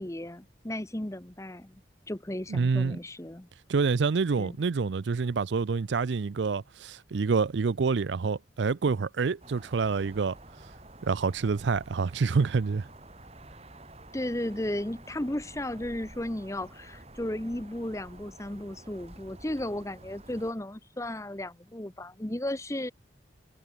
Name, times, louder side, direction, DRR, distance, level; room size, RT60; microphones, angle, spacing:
voice 1, 0.0-3.5 4.4-4.6 14.1-22.9, left 1 dB, 15° left, 0.9 m, -34 dB
voice 2, 2.5-3.0 3.7-10.3 11.0-12.9, right 4 dB, 75° right, 0.5 m, -27 dB
sound 1, 9.4-20.5, right 1 dB, 35° right, 5.5 m, -50 dB
head